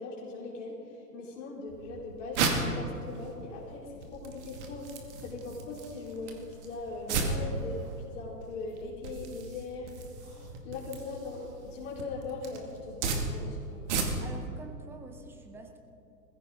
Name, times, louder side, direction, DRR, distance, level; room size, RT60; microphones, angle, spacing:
voice 1, 0.0-4.9 5.2-9.9 10.2-13.8, left 3 dB, 50° left, -5 dB, 4.5 m, -40 dB
sound 1, 1.7-14.5, right 4 dB, 45° right, 2.3 m, -36 dB
voice 2, 14.2-15.8, right 3 dB, 5° right, 5 dB, 0.5 m, -47 dB
20.5 x 15.5 x 3.9 m, 2.7 s
figure-of-eight pair, 115°, 48 cm